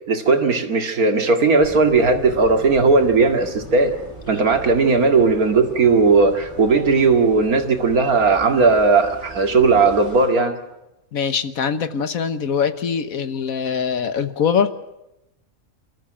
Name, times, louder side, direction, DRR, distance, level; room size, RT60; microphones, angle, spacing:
voice 1, 0.1-4.0 4.3-10.6, right 4 dB, 90° right, 5 dB, 2.5 m, -17 dB
sound 1, 1.6-10.3, right 1 dB, 30° right, 8.2 m, -40 dB
voice 2, 11.1-14.7, left 7 dB, 75° left, 11 dB, 1.6 m, -22 dB
29.5 x 14.0 x 8.9 m, 0.90 s
omnidirectional pair, 1.5 m